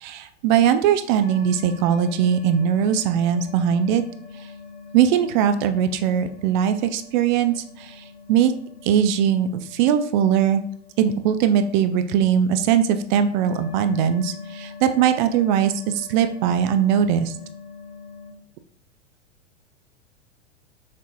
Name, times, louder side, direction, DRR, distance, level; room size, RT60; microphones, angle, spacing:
voice 1, 0.0-4.0 4.9-8.5 8.8-10.6 11.0-17.3, right 8 dB, 45° right, 10 dB, 0.4 m, -20 dB
sound 1, 1.2-18.3, left 5 dB, 15° left, 1.0 m, -43 dB
6.0 x 2.8 x 2.9 m, 0.62 s
hypercardioid pair, 100°, 35 cm